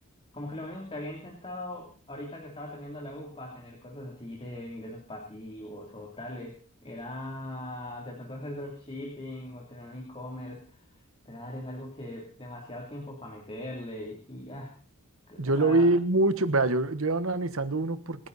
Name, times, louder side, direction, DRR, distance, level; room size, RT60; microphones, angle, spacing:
voice 1, 0.3-10.8 11.2-14.7 15.3-15.9, left 1 dB, 25° left, 0 dB, 3.1 m, -40 dB
voice 2, 15.4-18.3, right 2 dB, 65° right, 12 dB, 1.3 m, -25 dB
27.5 x 10.5 x 4.2 m, 0.39 s
head